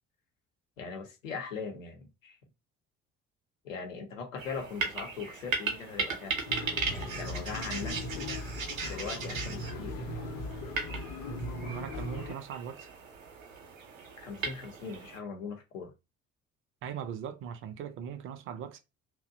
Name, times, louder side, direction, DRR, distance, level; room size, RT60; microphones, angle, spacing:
voice 1, 0.8-2.4 3.6-6.4 6.9-8.4 8.8-10.1 14.2-15.9, left 5 dB, 80° left, 0.7 m, -40 dB
sound 1, 4.4-15.2, right 4 dB, 80° right, 0.6 m, -37 dB
sound 2, 6.5-12.4, left 1 dB, 45° left, 0.7 m, -39 dB
voice 2, 11.6-12.9 16.8-18.8, right 8 dB, 35° right, 0.4 m, -40 dB
2.6 x 2.1 x 2.5 m
figure-of-eight pair, 50°, 39 cm